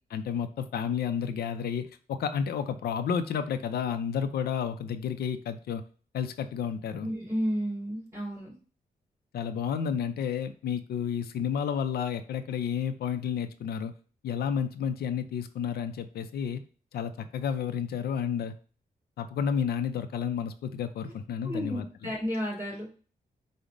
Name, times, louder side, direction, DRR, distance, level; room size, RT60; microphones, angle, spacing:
voice 1, 0.1-5.8 6.1-7.1 9.3-13.9 14.2-16.6 16.9-18.5 19.2-22.1, left 7 dB, 85° left, 9 dB, 0.4 m, -31 dB
voice 2, 7.0-8.5 21.4-22.9, equal, 15° right, -3 dB, 2.6 m, -32 dB
5.2 x 2.1 x 4.8 m, 0.39 s
wide cardioid pair, 125°, 16 cm